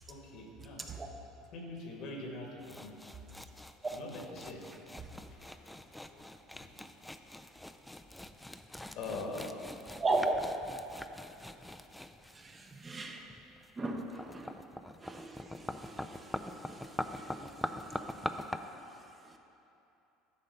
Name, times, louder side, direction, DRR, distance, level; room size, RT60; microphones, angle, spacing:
voice 1, 0.1-0.8 1.5-3.0 3.9-4.7 5.1-5.7 6.0-7.0 8.9-9.5, left 2 dB, 60° left, 0 dB, 1.5 m, -44 dB
sound 1, 2.6-18.6, left 1 dB, 5° left, 0.4 m, -44 dB
voice 2, 10.0-10.4 12.3-13.4 13.8-14.7 15.0-19.4, right 2 dB, 25° right, 3 dB, 0.8 m, -38 dB
10.5 x 4.2 x 5.4 m, 2.9 s
hypercardioid pair, 80°, 0 cm